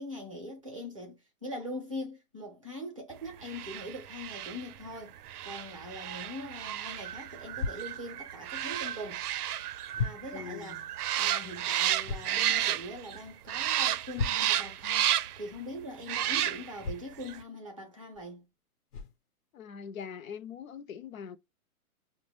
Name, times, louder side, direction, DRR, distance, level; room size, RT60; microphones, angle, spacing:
voice 1, 0.0-5.1 5.4-9.2 10.0-10.8 11.2-18.4, left 1 dB, 25° right, 0.5 m, -42 dB
sound 1, 3.4-13.2 13.5-15.5 16.0-16.9 17.2-17.4, right 12 dB, 85° right, 0.5 m, -32 dB
sound 2, 7.5-7.8 9.2-9.3 9.9-10.2 12.0-12.3 14.1-14.6 16.8-17.1 18.1-18.2 18.9-19.1, left 4 dB, 85° left, 0.9 m, -34 dB
voice 2, 10.3-10.9 19.5-21.4, left 7 dB, 65° left, 0.5 m, -42 dB
5.8 x 2.1 x 3.2 m
hypercardioid pair, 175°, 44 cm